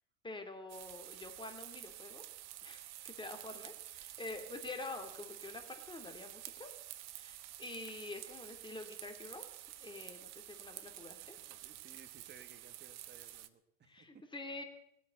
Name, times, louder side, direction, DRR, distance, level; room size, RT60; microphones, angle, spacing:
voice 1, 0.2-2.2 2.6-6.7 7.1-9.5 9.8-11.4 13.8-14.6, left 2 dB, 10° left, 5 dB, 2.4 m, -47 dB
sound 1, 0.7-13.5, right 14 dB, 45° right, 1.0 m, -50 dB
voice 2, 11.2-14.2, right 6 dB, 25° right, 9 dB, 1.7 m, -60 dB
18.0 x 8.5 x 7.9 m, 0.79 s
hypercardioid pair, 90°, 38 cm